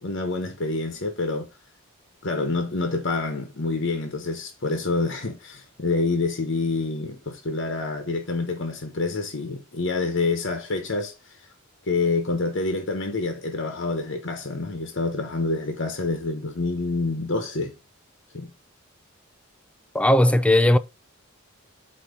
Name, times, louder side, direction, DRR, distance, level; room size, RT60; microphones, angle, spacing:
voice 1, 0.0-1.5 2.2-11.1 11.8-17.7 18.3-18.5, left 3 dB, 60° left, 1.1 m, -27 dB
voice 2, 19.9-20.8, left 1 dB, 5° left, 0.3 m, -17 dB
8.2 x 2.9 x 5.2 m
head